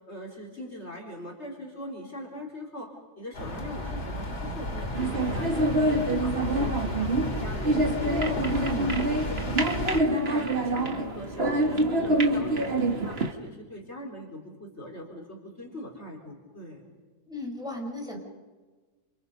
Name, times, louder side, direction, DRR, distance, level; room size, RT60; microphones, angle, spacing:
voice 1, 0.1-2.9 3.2-16.8, equal, 40° left, 1 dB, 4.5 m, -41 dB
sound 1, 3.3-10.0, left 1 dB, 70° left, 3.9 m, -33 dB
sound 2, 5.0-13.3, right 1 dB, 40° right, 2.3 m, -26 dB
voice 2, 8.5-9.0 17.3-18.2, left 1 dB, ahead, 0 dB, 5.6 m, -35 dB
28.5 x 28.5 x 5.5 m, 1.3 s
omnidirectional pair, 1.7 m